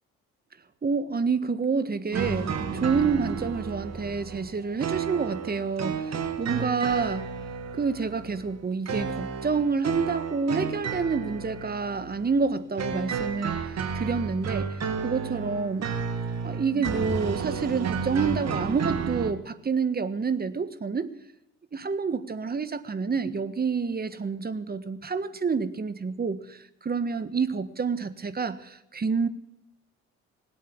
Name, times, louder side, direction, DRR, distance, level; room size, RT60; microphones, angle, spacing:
voice 1, 0.8-7.3 7.8-14.8 15.0-15.9 16.4-21.1 21.7-29.3, right 5 dB, 30° right, 13 dB, 1.5 m, -28 dB
sound 1, 2.1-19.3, right 6 dB, 60° right, 2.2 m, -32 dB
19.5 x 8.6 x 8.6 m, 0.85 s
cardioid pair, 90°, 30 cm